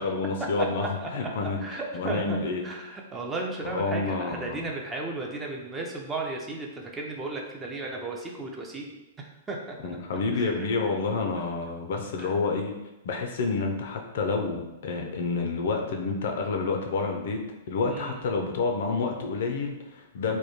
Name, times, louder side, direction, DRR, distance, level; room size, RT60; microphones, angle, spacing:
voice 1, 0.0-2.7 3.6-4.6 9.8-12.7 13.0-20.4, left 4 dB, 65° left, 3 dB, 0.4 m, -29 dB
voice 2, 0.6-1.3 1.6-2.4 2.6-9.8 10.3-10.6 11.5-11.6 12.2-12.3 17.9-18.2, right 3 dB, 15° right, 0 dB, 0.4 m, -35 dB
2.2 x 2.1 x 2.9 m, 0.99 s
hypercardioid pair, 115°, 0 cm